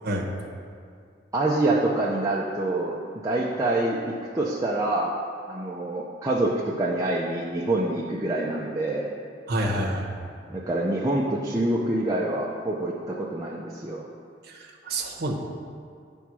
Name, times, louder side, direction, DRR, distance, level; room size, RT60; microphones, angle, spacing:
voice 1, 0.0-0.3 9.5-10.2 14.5-15.3, right 1 dB, 60° right, -2 dB, 0.9 m, -28 dB
voice 2, 1.3-3.0 3.2-5.1 5.5-9.1 10.5-14.1, right 2 dB, 20° right, -5 dB, 0.5 m, -26 dB
9.6 x 3.5 x 6.0 m, 2.2 s
head